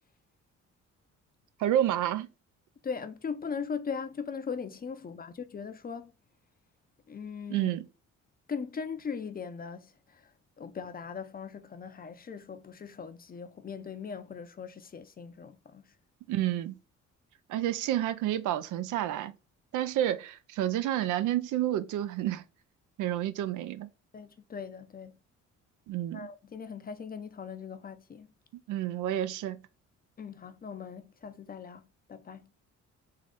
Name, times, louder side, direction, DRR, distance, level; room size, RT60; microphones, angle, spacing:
voice 1, 1.6-2.3 7.5-7.8 16.3-16.7 17.5-19.3 19.7-22.4 23.0-23.9 25.9-26.3 28.7-29.6, right 12 dB, 85° right, 0.5 m, -29 dB
voice 2, 2.8-6.1 7.1-7.7 8.5-10.3 10.6-15.9 24.1-25.2 26.1-28.3 30.2-32.5, left 6 dB, 30° left, 0.5 m, -39 dB
3.8 x 3.1 x 3.6 m
cardioid pair, 90°, 30 cm